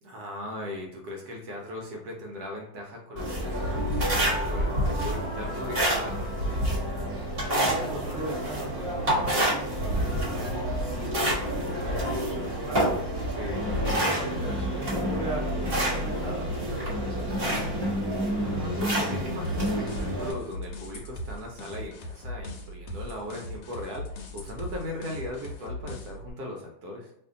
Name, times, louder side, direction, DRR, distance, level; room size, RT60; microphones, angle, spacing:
voice 1, 0.0-6.7 13.3-13.7 18.2-27.1, left 1 dB, 70° right, 0 dB, 1.0 m, -38 dB
sound 1, 3.2-20.3, equal, 40° right, 1.1 m, -28 dB
voice 2, 7.5-13.0 13.7-17.9, right 2 dB, 5° left, -7 dB, 0.7 m, -38 dB
sound 2, 19.4-26.3, left 1 dB, 75° left, 1.2 m, -39 dB
2.8 x 2.6 x 3.6 m, 0.76 s
omnidirectional pair, 1.9 m